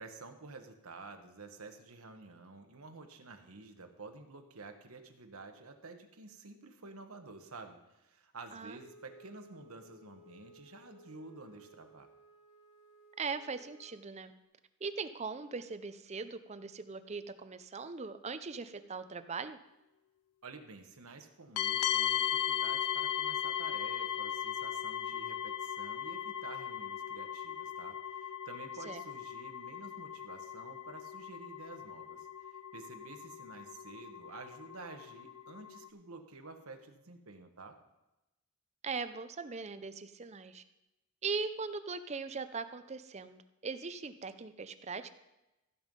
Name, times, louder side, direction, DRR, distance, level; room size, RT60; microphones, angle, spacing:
voice 1, 0.0-12.1 20.4-37.8, right 3 dB, 75° right, 6 dB, 1.2 m, -51 dB
Wind instrument woodwind instrument, 8.7-14.0, right 1 dB, 35° left, 3.4 m, -59 dB
voice 2, 13.2-14.3 14.8-19.6 28.9-29.0 38.8-40.6 41.2-45.2, right 4 dB, 30° right, 11 dB, 0.6 m, -40 dB
sound 1, 21.6-35.9, left 10 dB, 85° left, 0.5 m, -37 dB
15.0 x 5.5 x 5.3 m, 0.96 s
head